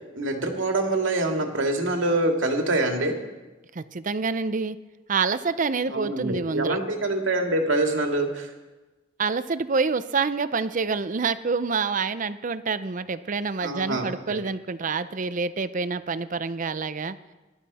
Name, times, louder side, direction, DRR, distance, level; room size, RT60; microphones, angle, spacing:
voice 1, 0.1-3.1 5.9-8.5 13.6-14.4, right 2 dB, 90° right, 3 dB, 2.2 m, -25 dB
voice 2, 3.7-4.8 5.1-6.8 9.2-17.2, right 4 dB, 45° right, 14 dB, 0.6 m, -27 dB
21.0 x 12.5 x 4.2 m, 1.2 s
head